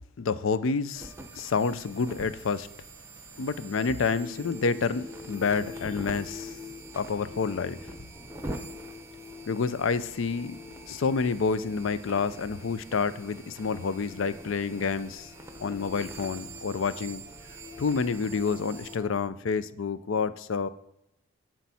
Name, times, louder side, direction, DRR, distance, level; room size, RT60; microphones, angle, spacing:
voice 1, 0.2-2.7 3.4-6.6 6.9-7.8 9.5-10.6 10.9-15.3 15.6-17.2 17.8-20.7, left 5 dB, 70° left, 0.4 m, -28 dB
sound 1, 1.0-19.0, right 2 dB, 15° right, 0.8 m, -45 dB
sound 2, 4.1-19.2, left 5 dB, 5° left, 3.3 m, -47 dB
10.5 x 4.6 x 4.2 m
head